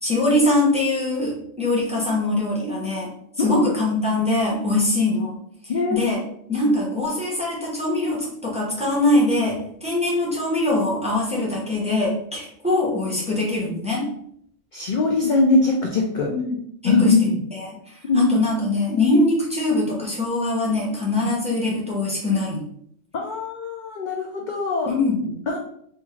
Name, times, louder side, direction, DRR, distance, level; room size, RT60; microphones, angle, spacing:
voice 1, 0.0-3.1 3.4-5.4 5.9-6.2 6.5-14.1 16.3-16.6 16.8-17.3 17.6-22.6 24.9-25.4, left 2 dB, 5° right, -4 dB, 0.7 m, -22 dB
voice 2, 5.7-6.1 14.7-16.3 16.8-17.4 18.1-18.4 21.2-21.3 23.1-24.9 25.5-25.6, left 3 dB, 60° left, 0 dB, 0.5 m, -21 dB
3.5 x 2.6 x 3.0 m, 0.69 s
omnidirectional pair, 1.3 m